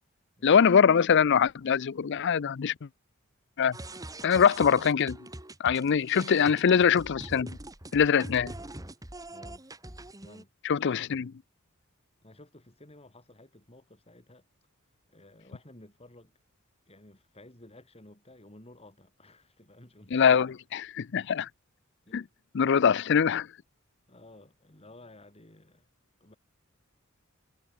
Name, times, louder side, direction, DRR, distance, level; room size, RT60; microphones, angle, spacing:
voice 1, 0.4-2.7 3.6-3.8 4.2-5.2 5.6-7.6 7.9-8.5 10.6-11.3 20.1-21.5 22.1-22.2 22.5-23.5, left 7 dB, 55° left, 0.5 m, -23 dB
sound 1, 3.7-10.4, right 1 dB, 15° right, 2.7 m, -43 dB
voice 2, 9.3-9.6 10.2-10.5 12.2-14.5 15.1-16.3 16.9-20.4 22.1-22.3 24.1-25.9 26.2-26.4, left 1 dB, 30° left, 3.6 m, -54 dB
head